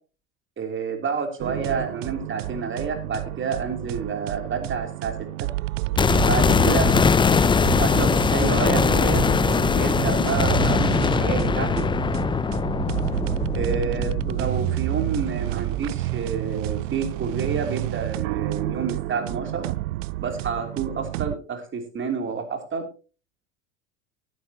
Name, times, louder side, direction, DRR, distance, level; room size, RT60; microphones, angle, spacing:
voice 1, 0.6-5.1 6.2-6.9 7.8-9.2 9.7-11.8 13.5-19.7 20.2-22.8, right 5 dB, 30° right, 6 dB, 3.3 m, -29 dB
sound 1, 1.4-21.4, right 18 dB, 75° right, 0.5 m, -29 dB
sound 2, 6.0-16.0 16.3-16.4, left 5 dB, 15° left, 0.5 m, -22 dB
18.0 x 9.6 x 2.9 m, 0.34 s
hypercardioid pair, 90°, 38 cm